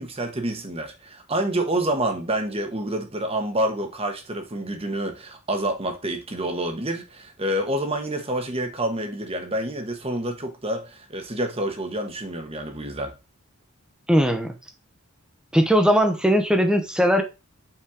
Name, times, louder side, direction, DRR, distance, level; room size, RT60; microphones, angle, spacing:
voice 1, 0.0-13.1, right 1 dB, 25° right, 1.3 m, -28 dB
voice 2, 14.1-14.5 15.5-17.2, equal, 5° right, 1.0 m, -19 dB
5.9 x 4.4 x 4.8 m
head